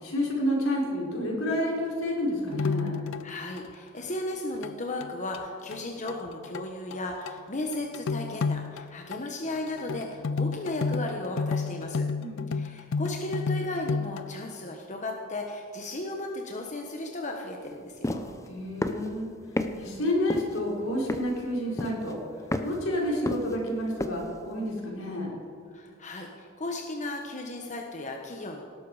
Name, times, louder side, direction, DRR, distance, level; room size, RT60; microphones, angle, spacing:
voice 1, 0.0-3.0 12.2-12.5 18.5-19.3 19.7-22.2 22.6-25.3, left 1 dB, 80° left, -3 dB, 4.8 m, -29 dB
sound 1, 2.5-3.7 4.1-4.2 4.6-4.7 5.0-5.4 5.7-5.8 6.1-6.2 6.4-7.0 7.3-7.4 7.7-8.8 9.1-9.2 9.6-14.3, left 4 dB, 65° left, 0.4 m, -31 dB
voice 2, 3.2-12.1 12.5-18.3 25.7-28.6, left 1 dB, 35° left, 1 dB, 1.2 m, -35 dB
sound 2, 18.0-18.3 18.8-19.1 19.6-19.7 20.3-20.6 21.1-21.4 21.8-22.1 22.5-22.8 23.3-23.7 24.0-24.2, left 1 dB, 15° left, 0.8 m, -29 dB
18.5 x 12.5 x 4.9 m, 2.1 s
head